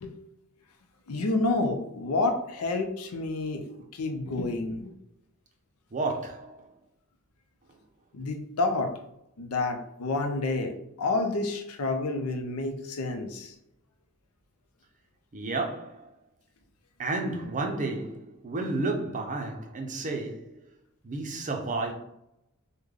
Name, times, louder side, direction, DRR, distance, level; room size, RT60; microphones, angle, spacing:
voice 1, 1.1-3.7 3.9-4.9 8.1-8.9 9.4-13.5, left 2 dB, 90° left, 0.5 m, -29 dB
voice 2, 5.9-6.7 15.3-16.1 17.0-20.6 21.0-21.9, right 2 dB, 35° right, 0.5 m, -31 dB
3.2 x 2.1 x 3.6 m
head